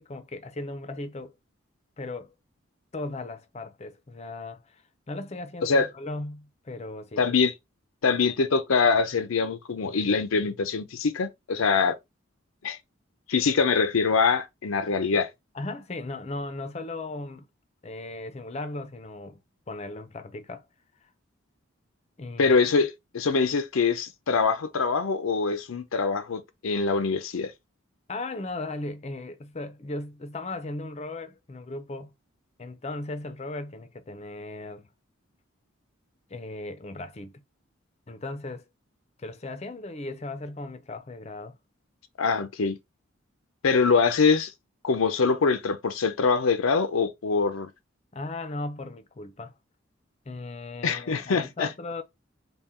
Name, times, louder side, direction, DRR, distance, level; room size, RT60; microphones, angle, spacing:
voice 1, 0.0-1.3 2.0-2.3 2.9-4.8 5.1-7.2 15.5-17.5 17.8-19.4 19.7-20.7 22.2-22.8 28.1-32.1 32.6-34.9 36.3-37.4 38.1-38.6 39.2-41.6 48.1-49.6 50.3-52.0, left 2 dB, 30° left, 0.5 m, -37 dB
voice 2, 7.2-7.5 8.0-12.0 12.6-12.8 13.3-15.3 22.4-27.5 42.2-42.8 43.6-44.5 44.8-47.7 50.8-51.7, left 5 dB, 90° left, 0.6 m, -24 dB
3.7 x 2.2 x 4.3 m
head